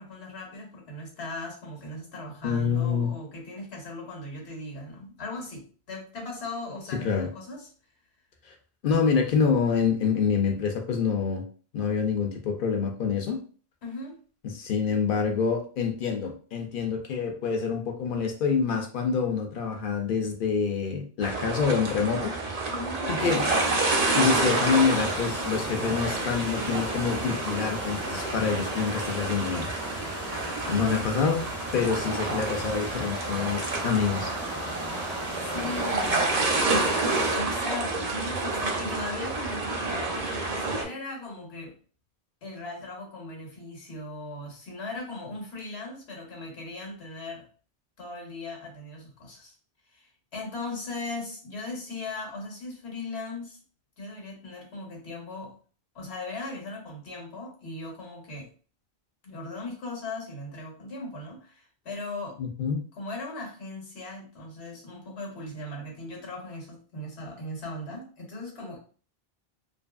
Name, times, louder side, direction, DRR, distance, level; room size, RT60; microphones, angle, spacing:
voice 1, 0.0-7.7 13.8-14.2 22.7-23.0 30.6-31.0 35.3-36.4 37.3-41.7 42.4-47.4 48.0-49.5 49.9-53.6 54.0-55.6 55.9-58.5 59.2-62.4 63.0-68.8, left 2 dB, 80° left, 0 dB, 1.2 m, -38 dB
voice 2, 2.4-3.1 7.0-7.3 8.8-11.4 11.7-13.4 14.4-22.7 23.0-23.5 24.1-29.7 30.0-30.2 30.7-31.4 31.7-34.3 62.4-62.8, left 6 dB, 60° left, 3 dB, 0.7 m, -26 dB
sound 1, 21.2-40.8, right 3 dB, 45° right, 0.6 m, -29 dB
sound 2, 23.2-37.4, left 1 dB, 20° left, 0.5 m, -38 dB
2.7 x 2.5 x 2.3 m, 0.41 s
omnidirectional pair, 1.1 m